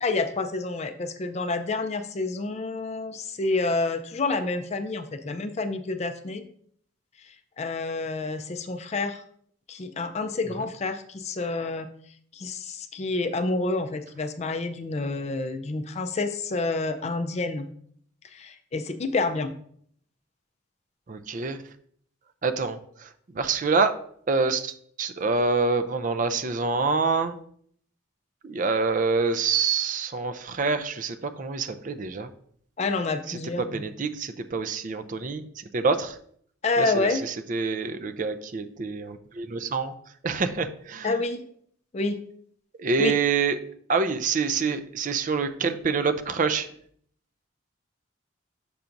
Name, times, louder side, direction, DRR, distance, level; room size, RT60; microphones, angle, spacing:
voice 1, 0.0-6.4 7.6-9.2 9.7-11.9 12.3-17.7 18.3-19.5 32.8-33.8 36.6-37.2 41.0-41.4 41.9-42.2 43.0-43.1, left 3 dB, 35° left, 8 dB, 0.4 m, -28 dB
voice 2, 21.1-21.6 22.4-23.9 24.3-27.4 28.4-32.3 33.3-36.2 36.8-39.9 40.2-41.2 42.8-43.6 43.9-46.7, right 4 dB, 40° right, 9 dB, 0.4 m, -26 dB
6.9 x 5.7 x 2.6 m, 0.62 s
head